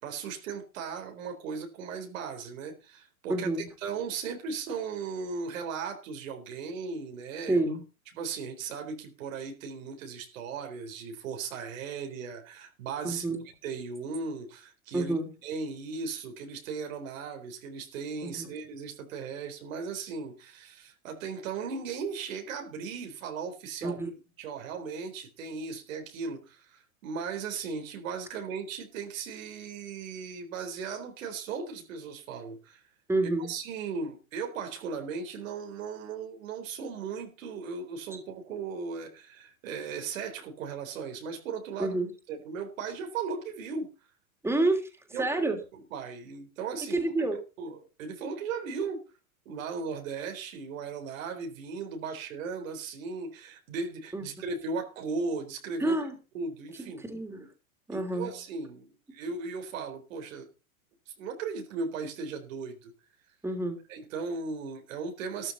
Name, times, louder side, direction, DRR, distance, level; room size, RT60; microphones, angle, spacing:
voice 1, 0.0-3.5 3.8-7.6 8.1-13.3 13.6-15.1 15.4-24.0 24.4-32.8 33.2-42.0 42.3-43.9 45.1-47.3 47.6-49.0 49.5-56.0 56.3-57.0 57.9-60.5 61.1-62.9 63.9-65.5, right 5 dB, 70° right, 4.3 m, -37 dB
voice 2, 3.3-3.6 7.5-7.8 13.0-13.4 14.9-15.3 18.2-18.5 23.8-24.1 33.1-33.5 41.8-42.1 44.4-44.9 45.2-45.6 46.9-47.4 54.1-54.3 55.8-56.1 57.0-57.5 57.9-58.3 63.4-63.8, right 2 dB, 5° right, 3.4 m, -28 dB
13.5 x 12.0 x 4.0 m
hypercardioid pair, 110°, 41 cm